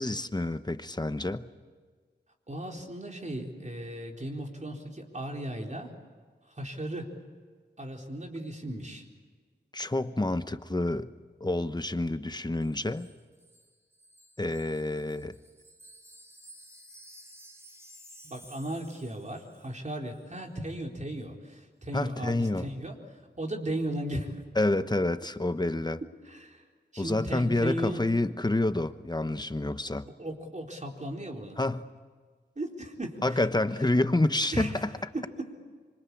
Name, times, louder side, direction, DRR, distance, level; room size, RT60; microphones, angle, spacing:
voice 1, 0.0-1.5 9.7-11.1 11.4-13.1 14.4-15.3 21.9-22.7 24.6-26.0 27.0-30.1 31.6-31.9 33.2-35.0, left 2 dB, 20° left, 11 dB, 1.1 m, -28 dB
voice 2, 2.5-5.9 6.5-7.1 7.8-9.0 18.2-24.4 26.2-26.6 26.9-28.0 30.0-31.6 32.6-33.4 34.5-34.9 35.1-35.6, right 1 dB, 40° right, 1 dB, 4.1 m, -36 dB
Wind chime, 12.6-19.8 20.1-20.3, equal, 15° right, 3.4 m, -54 dB
25.5 x 25.5 x 8.6 m, 1.5 s
wide cardioid pair, 70°, 19 cm